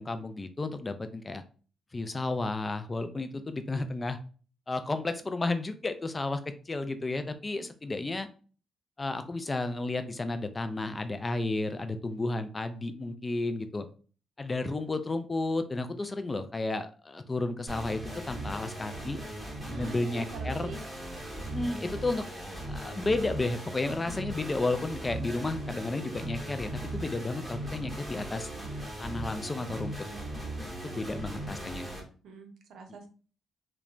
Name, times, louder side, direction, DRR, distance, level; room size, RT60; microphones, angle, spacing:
voice 1, 0.0-1.4 1.9-4.2 4.7-8.3 9.0-13.9 14.4-18.0 18.3-19.2 19.7-20.7 21.5-22.2 22.7-28.5 29.0-29.9 30.8-31.9, left 2 dB, 25° left, 10 dB, 0.3 m, -32 dB
sound 1, 17.7-32.0, right 1 dB, ahead, 1.0 m, -38 dB
voice 2, 19.6-20.8 30.7-31.8 32.2-33.1, right 5 dB, 75° right, 4 dB, 0.6 m, -47 dB
3.0 x 2.1 x 2.4 m, 0.39 s
cardioid pair, 100°, 0 cm